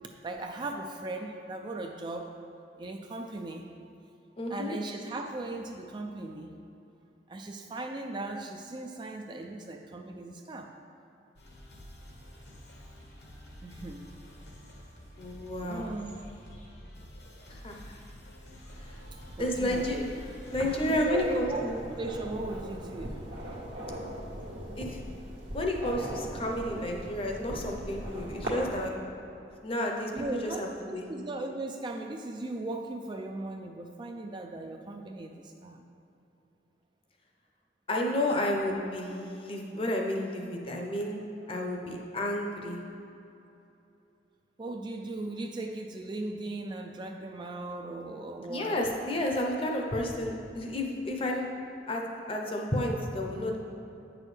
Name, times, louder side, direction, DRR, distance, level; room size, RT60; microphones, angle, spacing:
voice 1, 0.2-2.4 2.8-3.7 4.5-6.5 7.3-10.7 13.6-14.1 15.6-16.1 19.4-19.9 20.9-21.7 22.0-23.2 30.1-30.6 30.9-35.8 44.6-48.7, right 2 dB, 25° right, 3 dB, 0.3 m, -37 dB
voice 2, 4.4-4.8 15.2-15.9 17.5-17.8 19.4-20.1 20.5-21.8 24.8-25.0 25.5-28.9 29.6-30.1 30.4-31.0 37.9-41.2 41.5-42.8 48.5-51.5 51.9-52.0 52.3-53.6, left 1 dB, 30° left, 1 dB, 0.7 m, -31 dB
sound 1, 11.4-21.4, equal, 70° left, 1.2 m, -49 dB
sound 2, 18.7-28.7, equal, 85° right, 1.3 m, -40 dB
8.4 x 6.2 x 3.3 m, 2.8 s
head